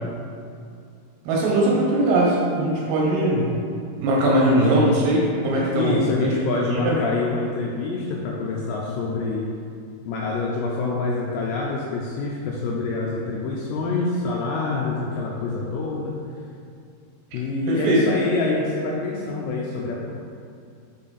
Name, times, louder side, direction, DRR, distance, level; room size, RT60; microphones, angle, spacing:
voice 1, 1.3-3.5 4.0-6.3 6.7-7.0 17.7-18.0, right 1 dB, 75° right, -4 dB, 2.9 m, -20 dB
voice 2, 5.7-9.5 10.1-16.2 17.3-20.2, left 3 dB, 85° left, -3 dB, 2.5 m, -26 dB
6.6 x 5.7 x 4.0 m, 2.4 s
omnidirectional pair, 5.4 m